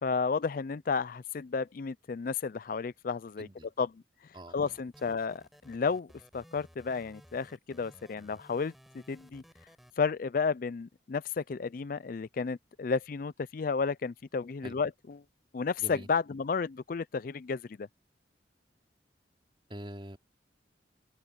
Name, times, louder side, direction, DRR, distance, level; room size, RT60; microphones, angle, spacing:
voice 1, 0.0-3.5 3.8-3.9 4.5-6.1 6.3-8.7 9.1-9.4 10.0-15.2 15.5-17.9, left 5 dB, 50° left, 0.4 m, -32 dB
voice 2, 3.4-3.7 4.3-4.5 14.6-14.8 15.8-16.1 19.7-20.2, right 1 dB, 30° right, 3.4 m, -44 dB
sound 1, 4.6-9.9, equal, ahead, 5.5 m, -57 dB
open air
head